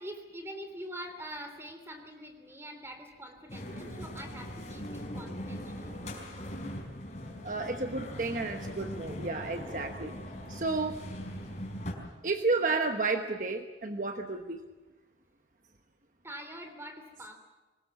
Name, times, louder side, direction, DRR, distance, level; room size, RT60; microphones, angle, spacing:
voice 1, 0.0-6.4 16.2-17.3, equal, 15° right, 6 dB, 3.2 m, -44 dB
sound 1, 3.5-11.9, equal, 40° left, 4.9 m, -40 dB
voice 2, 7.4-10.2 10.5-11.0 12.2-14.6, right 3 dB, 45° right, 5 dB, 1.1 m, -31 dB
24.5 x 20.5 x 7.2 m, 1.2 s
head